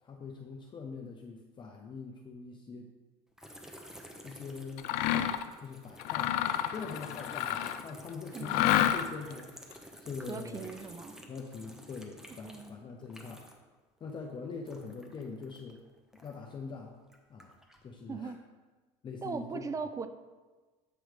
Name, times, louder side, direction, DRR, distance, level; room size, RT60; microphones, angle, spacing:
voice 1, 0.0-2.9 4.2-6.3 6.7-10.7 11.3-13.6 14.0-15.8 16.2-16.9 17.3-17.6 17.8-18.3 19.0-19.6, left 4 dB, 30° left, 1 dB, 0.7 m, -43 dB
sound 1, 3.4-13.8 14.0-16.5 17.0-17.9, equal, 5° right, 0.7 m, -51 dB
Mechanisms, 4.8-5.5 6.0-7.9 8.4-9.3, left 12 dB, 70° left, 0.4 m, -29 dB
voice 2, 8.3-8.7 10.3-11.2 12.4-12.7 18.1-18.4 19.2-20.1, right 5 dB, 20° right, 10 dB, 0.4 m, -39 dB
7.7 x 3.1 x 5.0 m, 1.3 s
supercardioid pair, 110°, 15 cm